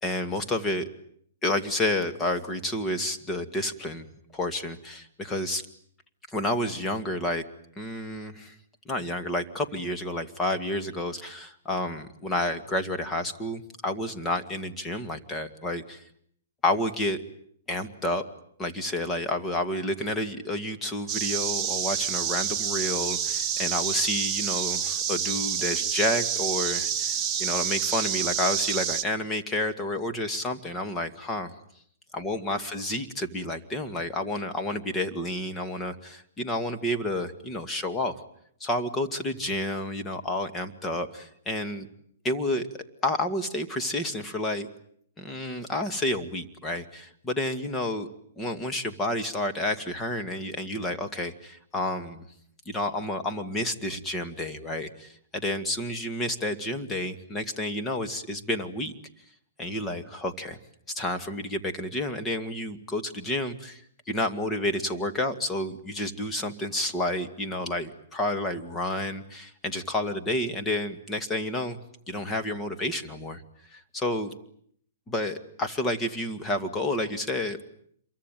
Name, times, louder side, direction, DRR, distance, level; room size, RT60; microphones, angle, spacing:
voice 1, 0.0-0.9 1.4-4.1 4.3-5.7 6.3-7.4 7.8-8.5 8.9-16.0 16.6-17.2 17.7-18.2 18.6-31.5 32.1-38.2 38.6-41.9 42.2-44.7 45.2-48.1 48.4-52.3 52.7-58.9 59.6-60.6 60.9-63.8 64.1-71.8 72.1-73.4 73.7-74.3 75.1-77.6, left 1 dB, 15° left, 6 dB, 2.1 m, -30 dB
sound 1, 21.1-29.0, right 8 dB, 20° right, 1.6 m, -28 dB
27.5 x 23.5 x 9.2 m, 0.67 s
hypercardioid pair, 150°, 0 cm